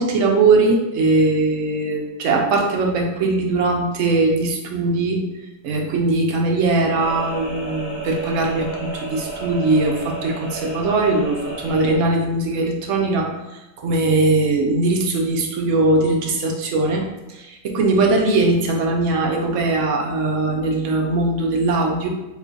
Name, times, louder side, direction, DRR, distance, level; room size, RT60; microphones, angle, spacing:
voice 1, 0.0-5.2 5.6-13.3 13.8-17.0 17.3-22.1, right 2 dB, 65° right, 1 dB, 0.9 m, -20 dB
sound 1, 7.0-11.9, right 2 dB, 15° left, 0.4 m, -32 dB
3.0 x 2.3 x 3.8 m, 0.98 s
omnidirectional pair, 1.5 m